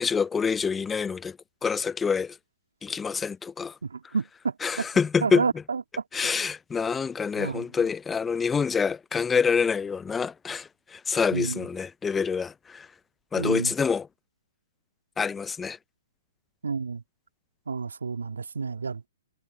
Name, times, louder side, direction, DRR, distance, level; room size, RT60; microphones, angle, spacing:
voice 1, 0.0-1.4 1.6-2.4 2.8-3.7 4.6-5.4 6.1-12.9 13.3-14.1 15.2-15.8, left 6 dB, 10° left, 0.4 m, -26 dB
voice 2, 3.8-4.9 5.2-5.8 7.4-7.6 11.3-11.7 13.4-13.7 16.6-17.0 17.7-19.0, right 5 dB, 80° right, 2.2 m, -30 dB
figure-of-eight pair, 125°, 0 cm